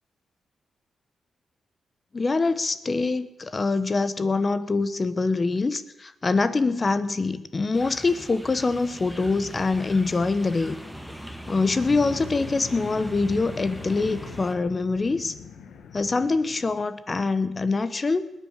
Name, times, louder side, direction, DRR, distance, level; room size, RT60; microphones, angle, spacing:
voice 1, 2.1-10.8 11.5-15.3 15.9-18.3, left 3 dB, 35° left, 13 dB, 1.1 m, -24 dB
sound 1, 7.7-14.6, equal, 5° left, 1.7 m, -39 dB
sound 2, 11.8-16.9, left 6 dB, 80° left, 1.4 m, -43 dB
19.5 x 9.2 x 6.6 m, 0.93 s
cardioid pair, 70°, 0 cm